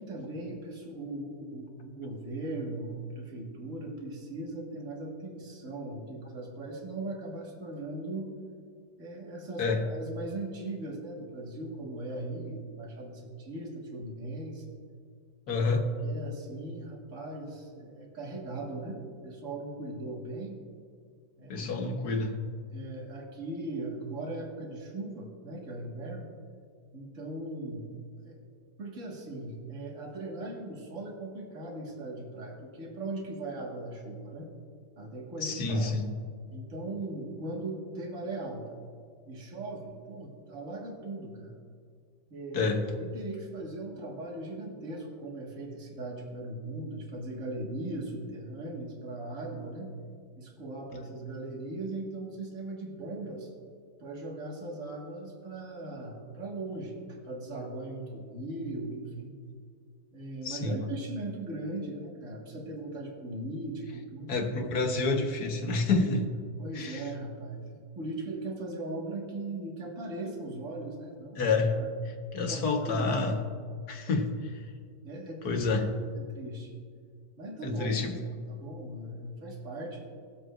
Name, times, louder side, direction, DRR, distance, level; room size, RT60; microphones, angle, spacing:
voice 1, 0.0-8.3 9.0-14.8 15.6-15.7 16.0-20.6 21.4-21.9 22.7-26.3 26.9-28.4 28.8-34.5 35.0-36.0 36.5-38.7 39.3-41.5 42.3-50.0 50.4-53.5 54.0-59.3 60.1-64.4 66.6-71.4 71.8-71.9 72.5-73.1 75.0-75.7 76.1-76.8 77.4-78.0 78.5-80.0, right 2 dB, 50° right, -1 dB, 2.0 m, -39 dB
voice 2, 15.5-15.9 21.5-22.4 35.4-36.1 42.5-42.8 60.4-60.8 64.3-66.2 66.7-67.0 71.4-71.8 72.3-73.3 73.9-74.3 75.4-75.8 77.6-78.1, left 3 dB, 65° left, 3 dB, 1.7 m, -28 dB
20.5 x 7.8 x 2.5 m, 2.1 s
omnidirectional pair, 1.8 m